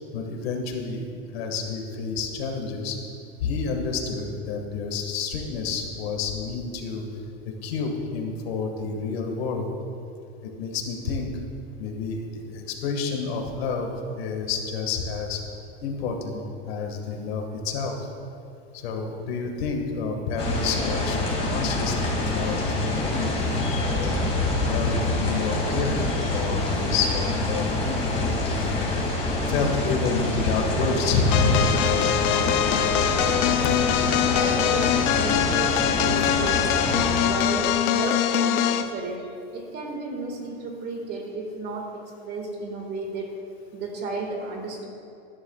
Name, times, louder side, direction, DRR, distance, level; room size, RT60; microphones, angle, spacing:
voice 1, 0.1-3.0 3.4-7.0 7.4-9.7 10.4-11.3 11.8-15.4 15.8-18.1 18.7-24.3 24.7-28.8 29.5-31.6, left 4 dB, 75° left, 3 dB, 1.8 m, -29 dB
sound 1, 20.4-37.2, left 2 dB, 20° left, 2.5 m, -26 dB
sound 2, 31.3-38.9, left 10 dB, 50° left, 0.6 m, -23 dB
voice 2, 34.3-39.3 39.5-43.4 43.7-44.9, right 3 dB, 35° right, 1 dB, 1.9 m, -33 dB
17.5 x 11.0 x 2.4 m, 2.6 s
supercardioid pair, 150°, 31 cm